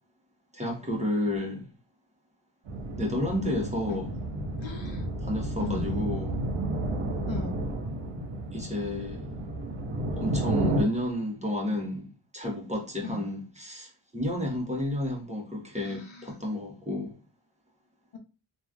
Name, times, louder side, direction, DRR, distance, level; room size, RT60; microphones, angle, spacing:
voice 1, 0.5-1.7 3.0-4.1 5.2-6.4 8.5-9.3 10.1-12.1 12.3-17.2, left 1 dB, 15° right, 1.1 m, -31 dB
sound 1, 2.7-10.8, right 1 dB, 60° right, 1.0 m, -31 dB
voice 2, 4.6-5.0 5.6-6.0 7.3-7.6 13.0-13.3 15.8-16.3 18.1-18.2, left 3 dB, 65° left, 0.8 m, -38 dB
3.1 x 2.5 x 2.4 m
cardioid pair, 50°, 49 cm